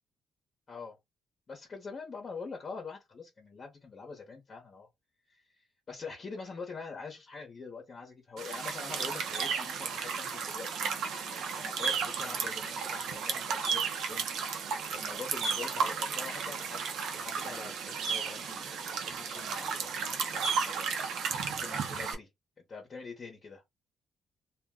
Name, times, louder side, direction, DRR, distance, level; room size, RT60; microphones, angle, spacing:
voice 1, 1.5-4.9 5.3-14.3 14.9-18.7 19.1-20.9 21.6-22.3 22.7-23.6, left 4 dB, 40° left, 1.0 m, -45 dB
sound 1, 8.4-22.1, right 6 dB, 75° right, 0.7 m, -34 dB
2.4 x 2.2 x 3.6 m
cardioid pair, 90°, 0 cm